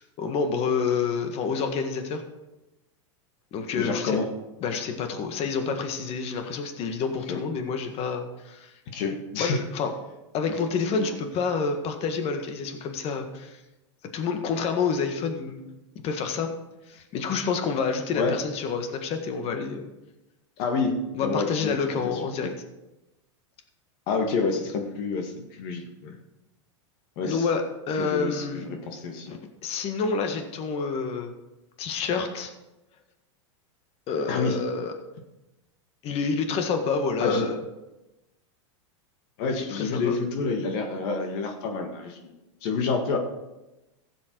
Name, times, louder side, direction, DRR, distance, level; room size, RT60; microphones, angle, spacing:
voice 1, 0.0-2.2 3.5-4.2 4.6-8.7 9.4-9.9 10.3-13.6 14.1-15.6 16.0-16.5 16.9-19.9 21.1-22.5 27.2-28.7 29.3-31.3 31.8-32.5 34.1-34.9 36.0-37.6 39.5-40.2, left 5 dB, 40° left, 6 dB, 1.7 m, -28 dB
voice 2, 3.7-4.3 7.3-7.4 8.9-9.6 10.9-11.1 18.1-18.3 20.6-21.8 22.0-22.2 24.1-26.1 27.2-27.5 28.0-29.3 34.3-34.6 37.2-37.4 39.4-42.3 42.6-43.2, left 4 dB, 55° left, 4 dB, 2.0 m, -28 dB
15.0 x 7.8 x 4.7 m, 0.99 s
hypercardioid pair, 115°, 15 cm